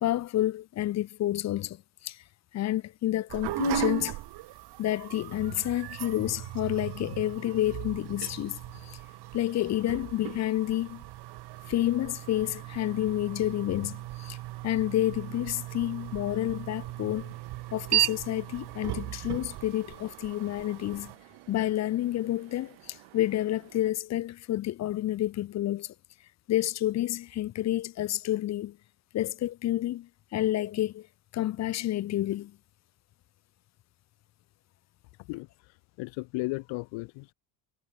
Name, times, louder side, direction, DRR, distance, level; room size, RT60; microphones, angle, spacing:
voice 1, 0.0-2.2 2.5-4.2 4.8-9.0 9.3-11.0 11.7-14.4 14.6-17.3 17.7-21.1 21.5-25.9 26.5-28.8 29.1-31.1 31.3-32.6, left 14 dB, 40° left, 0.4 m, -29 dB
sound 1, 3.3-21.2, right 17 dB, 60° right, 0.9 m, -36 dB
sound 2, 8.7-23.9, right 21 dB, 75° right, 3.4 m, -56 dB
voice 2, 35.2-37.3, left 25 dB, 75° left, 0.9 m, -36 dB
cardioid pair, 100°, 46 cm